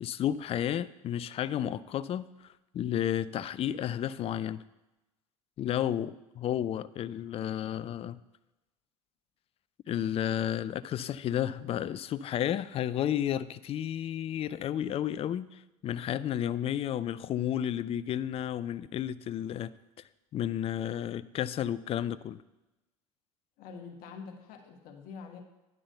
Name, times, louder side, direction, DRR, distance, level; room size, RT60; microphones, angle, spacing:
voice 1, 0.0-2.3 2.7-4.6 5.6-8.2 9.9-19.7 20.3-22.4, left 10 dB, 35° left, 17 dB, 0.4 m, -32 dB
voice 2, 23.6-25.4, left 5 dB, 55° left, 3 dB, 1.3 m, -45 dB
10.5 x 3.9 x 6.6 m, 1.0 s
hypercardioid pair, 70°, 18 cm